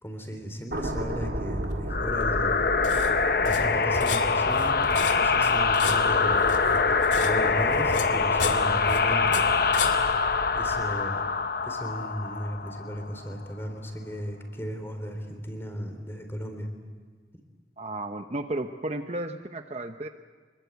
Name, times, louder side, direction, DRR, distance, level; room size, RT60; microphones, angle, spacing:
voice 1, 0.0-2.7 3.4-6.5 7.2-9.4 10.6-11.2 11.6-16.7, equal, 15° left, 5 dB, 3.5 m, -35 dB
sound 1, 0.7-7.0 7.4-7.6, right 1 dB, 60° right, 2.9 m, -36 dB
sound 2, 1.6-10.9, left 4 dB, 80° left, 2.4 m, -35 dB
sound 3, 1.9-13.2, left 4 dB, 50° left, 0.9 m, -24 dB
voice 2, 17.8-20.1, right 1 dB, 35° right, 6 dB, 0.8 m, -33 dB
25.5 x 22.0 x 8.3 m, 1.5 s
head